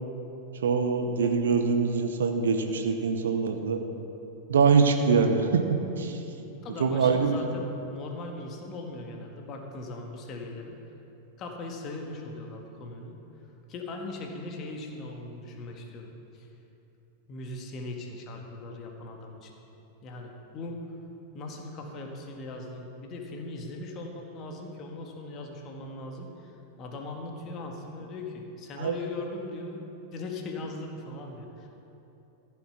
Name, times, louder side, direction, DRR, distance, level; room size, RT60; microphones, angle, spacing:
voice 1, 0.6-3.8 4.5-6.2 6.8-7.4 28.8-29.0, right 5 dB, 65° right, 6 dB, 0.9 m, -24 dB
voice 2, 6.6-10.7 11.4-13.1 13.7-16.5 17.3-19.5 20.0-20.8 21.3-26.5 26.8-29.8 30.1-31.7, left 2 dB, 35° left, 2 dB, 1.6 m, -39 dB
14.5 x 7.1 x 5.6 m, 3.0 s
figure-of-eight pair, 90°, 0 cm